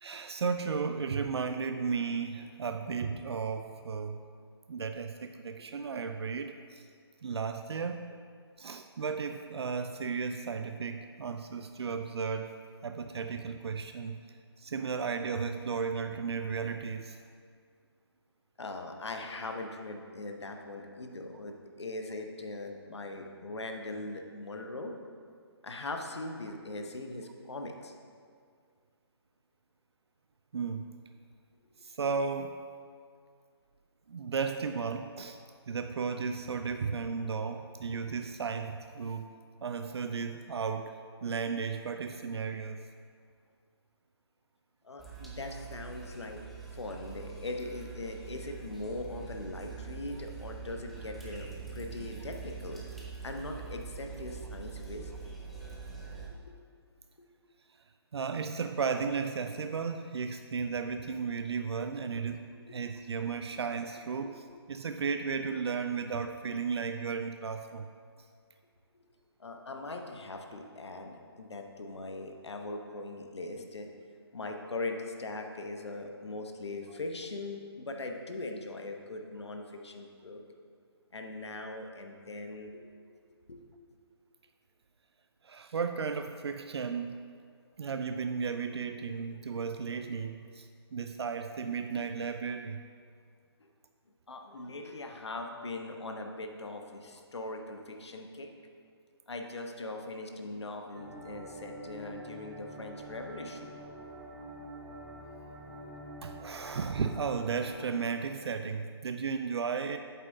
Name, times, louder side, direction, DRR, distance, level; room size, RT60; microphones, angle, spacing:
voice 1, 0.0-4.2 4.7-6.9 7.2-8.2 8.6-12.6 12.8-14.2 14.6-17.2 30.5-30.9 31.8-32.5 34.1-35.4 35.7-42.8 58.1-67.9 85.4-87.2 87.8-92.8 106.2-110.0, right 5 dB, 70° right, 7 dB, 0.4 m, -34 dB
voice 2, 18.6-24.9 25.6-27.9 44.8-46.4 46.7-52.8 53.2-55.1 62.5-62.7 64.2-64.3 68.9-69.0 69.4-73.9 74.3-80.4 81.1-82.8 83.5-83.6 93.6-93.7 94.3-98.5 99.3-103.7, left 2 dB, 80° left, 3 dB, 1.0 m, -40 dB
sound 1, 45.0-56.3, right 6 dB, ahead, 0.4 m, -44 dB
sound 2, 100.9-107.9, right 1 dB, 45° right, 1.7 m, -46 dB
8.2 x 7.3 x 2.7 m, 2.1 s
hypercardioid pair, 155°, 14 cm